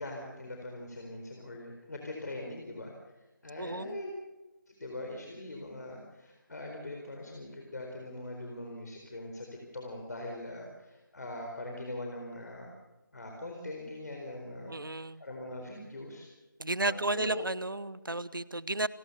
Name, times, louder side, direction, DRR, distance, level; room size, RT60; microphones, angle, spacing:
voice 1, 0.0-3.1 3.4-4.1 4.7-9.5 9.7-12.7 13.1-16.3 16.8-17.4, left 1 dB, 55° left, 1 dB, 4.3 m, -42 dB
voice 2, 3.6-4.0 14.7-15.2 16.6-18.9, right 2 dB, 85° right, 18 dB, 1.0 m, -33 dB
28.5 x 15.0 x 6.8 m, 1.1 s
figure-of-eight pair, 160°, 11 cm